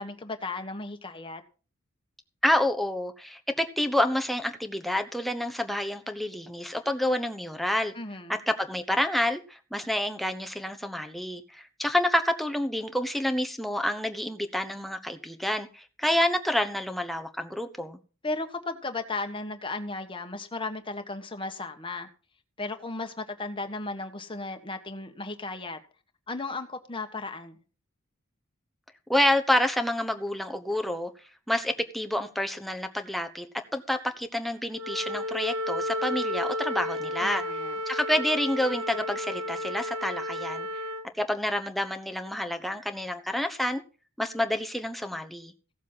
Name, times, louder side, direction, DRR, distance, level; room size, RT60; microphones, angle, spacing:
voice 1, 0.0-1.4 7.9-8.4 18.2-22.1 22.6-25.8 26.3-27.6 37.2-37.8, left 3 dB, 25° left, 1.5 m, -35 dB
voice 2, 2.4-7.9 8.3-18.0 29.1-31.1 31.5-33.5 33.7-37.6 37.9-40.7 41.2-43.8 44.2-45.5, left 1 dB, ahead, 1.1 m, -28 dB
Wind instrument woodwind instrument, 34.8-41.1, left 1 dB, 90° right, 1.2 m, -32 dB
16.0 x 7.4 x 5.6 m
head